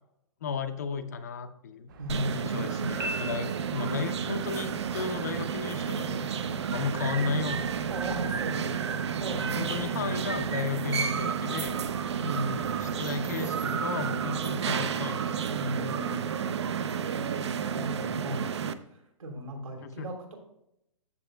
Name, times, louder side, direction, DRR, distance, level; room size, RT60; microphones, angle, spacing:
voice 1, 0.4-1.9 2.3-6.2 6.7-7.7 9.5-11.8 12.6-15.4 20.0-20.1, left 6 dB, 30° left, 9 dB, 0.5 m, -34 dB
sound 1, 1.9-15.8, right 3 dB, 40° right, 1.2 m, -46 dB
voice 2, 2.0-2.6 7.9-10.2 12.1-12.8 15.4-16.2 17.7-20.4, equal, 80° right, 3 dB, 3.3 m, -37 dB
sound 2, 2.1-18.7, right 7 dB, 55° right, 0.6 m, -31 dB
Piano, 3.0-4.1, right 1 dB, 10° right, 0.8 m, -37 dB
14.0 x 6.9 x 2.2 m, 0.79 s
hypercardioid pair, 175°, 17 cm